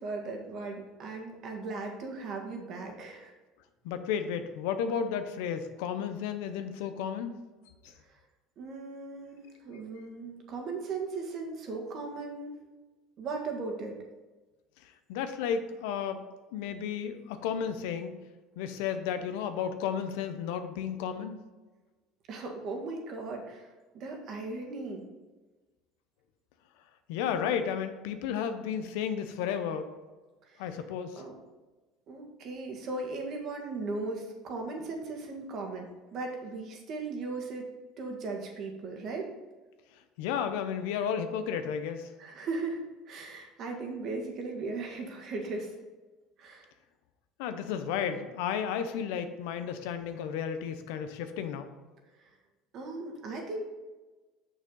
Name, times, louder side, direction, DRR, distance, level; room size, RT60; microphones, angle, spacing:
voice 1, 0.0-3.3 8.6-12.5 13.2-13.9 22.3-23.7 23.9-25.0 30.5-30.6 31.2-31.3 32.1-37.7 38.0-39.3 42.2-42.8 43.1-45.7 46.4-46.7 52.7-53.6, right 3 dB, 55° right, 2 dB, 1.7 m, -37 dB
voice 2, 3.8-7.3 15.1-16.2 16.5-18.1 18.6-21.4 27.1-29.9 30.6-31.2 40.2-42.1 47.4-51.7, left 7 dB, 85° left, 9 dB, 0.7 m, -33 dB
6.5 x 6.1 x 3.9 m, 1.2 s
supercardioid pair, 105°, 0 cm